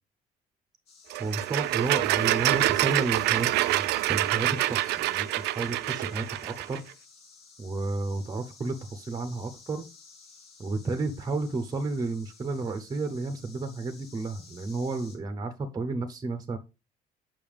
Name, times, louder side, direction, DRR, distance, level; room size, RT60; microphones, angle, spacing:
sound 1, 0.9-15.2, left 4 dB, 70° left, 2.0 m, -53 dB
sound 2, 1.1-6.8, right 17 dB, 80° right, 0.4 m, -26 dB
voice 1, 1.2-6.8 7.6-9.9 10.6-16.6, right 3 dB, 20° right, 7 dB, 0.8 m, -32 dB
7.0 x 5.7 x 3.4 m, 0.28 s
cardioid pair, 110°, 17 cm